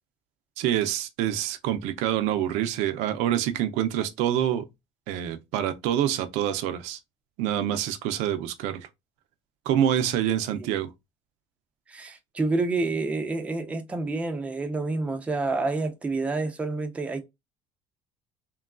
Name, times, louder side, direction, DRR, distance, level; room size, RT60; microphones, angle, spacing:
voice 1, 0.6-4.7 5.1-7.0 7.4-8.9 9.7-10.9, right 11 dB, 85° right, 0.4 m, -26 dB
voice 2, 11.9-17.2, right 3 dB, 10° right, 0.4 m, -28 dB
3.0 x 2.2 x 2.3 m
cardioid pair, 145°, 11 cm